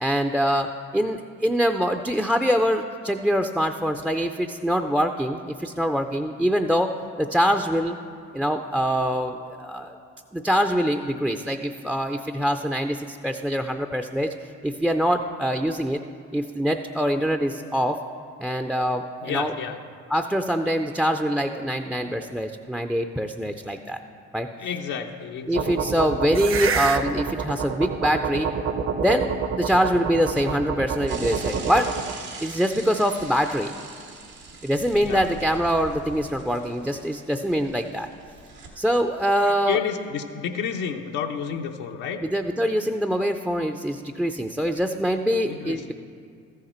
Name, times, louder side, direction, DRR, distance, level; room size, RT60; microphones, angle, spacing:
voice 1, 0.0-8.0 8.3-10.0 10.3-14.3 14.6-16.0 16.3-18.0 18.4-19.5 20.1-24.0 24.3-24.5 25.5-28.5 29.0-29.3 29.6-31.9 32.4-33.7 34.6-38.1 38.8-39.9 42.2-45.9, equal, 5° right, 7 dB, 0.4 m, -24 dB
voice 2, 19.2-19.8 24.6-26.0 35.0-35.5 39.4-42.2 45.4-45.9, left 7 dB, 80° left, 3 dB, 0.7 m, -31 dB
sound 1, 25.5-32.1, right 6 dB, 40° right, 0.7 m, -28 dB
Bicycle / Mechanisms, 31.1-38.7, right 4 dB, 85° right, 1.6 m, -42 dB
13.5 x 6.6 x 4.4 m, 2.3 s
supercardioid pair, 65°, 32 cm